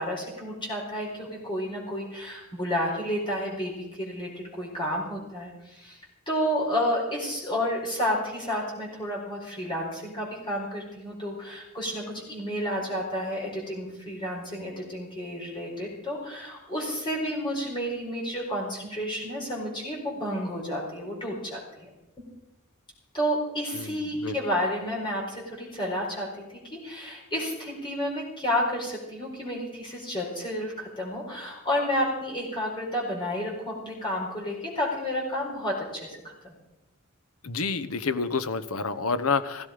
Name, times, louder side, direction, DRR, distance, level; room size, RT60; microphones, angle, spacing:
voice 1, 0.0-6.0 6.3-21.9 22.2-22.3 23.1-36.5, equal, 20° left, -3 dB, 4.5 m, -31 dB
voice 2, 23.7-24.3 37.4-39.7, left 4 dB, 85° left, 13 dB, 1.0 m, -29 dB
16.0 x 15.5 x 5.1 m, 0.95 s
head